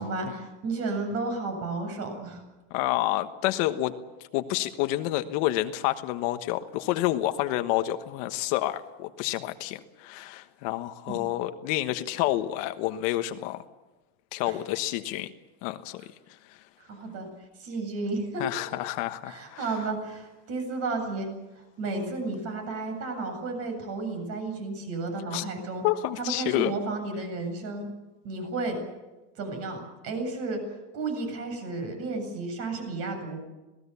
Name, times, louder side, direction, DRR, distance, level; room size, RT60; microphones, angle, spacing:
voice 1, 0.0-2.4 11.1-11.2 14.4-14.5 16.8-17.3 17.6-18.4 19.3-21.3 21.6-25.8 26.2-27.9 28.2-28.8 29.4-30.6 30.9-33.4, right 3 dB, 40° right, 5 dB, 7.9 m, -32 dB
voice 2, 2.7-4.0 4.3-13.6 14.3-15.3 15.6-16.0 16.3-16.6 18.4-19.7 25.3-25.4 25.8-26.7, left 15 dB, 55° left, 9 dB, 1.3 m, -29 dB
27.0 x 19.0 x 7.0 m, 1.1 s
supercardioid pair, 160°, 35 cm